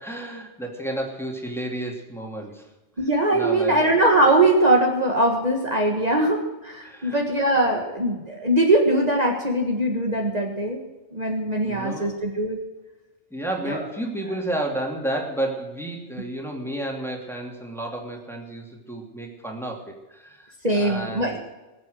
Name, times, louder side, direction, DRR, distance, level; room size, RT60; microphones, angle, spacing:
voice 1, 0.0-2.6 3.3-3.8 6.8-7.2 11.7-12.2 13.3-21.4, right 1 dB, ahead, 0 dB, 2.8 m, -31 dB
voice 2, 3.0-10.8 11.1-12.6 13.7-13.9 20.6-21.4, right 1 dB, 35° right, 0 dB, 1.7 m, -21 dB
21.0 x 8.1 x 6.5 m, 1.1 s
omnidirectional pair, 1.2 m